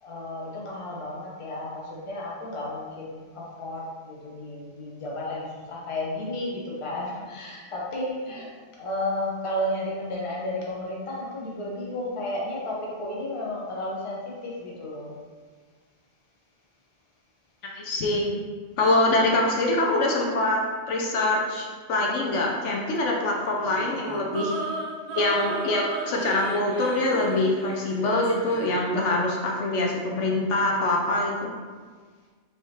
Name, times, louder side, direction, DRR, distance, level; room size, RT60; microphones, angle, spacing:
voice 1, 0.0-8.5 8.8-15.2, left 1 dB, 30° left, -5 dB, 0.8 m, -33 dB
voice 2, 17.7-18.4 18.8-20.6 20.9-24.6 25.1-31.5, left 2 dB, 75° left, -1 dB, 0.9 m, -24 dB
sound 1, 23.6-28.8, right 3 dB, 65° right, 0.4 m, -35 dB
4.5 x 3.4 x 2.8 m, 1.5 s
omnidirectional pair, 1.3 m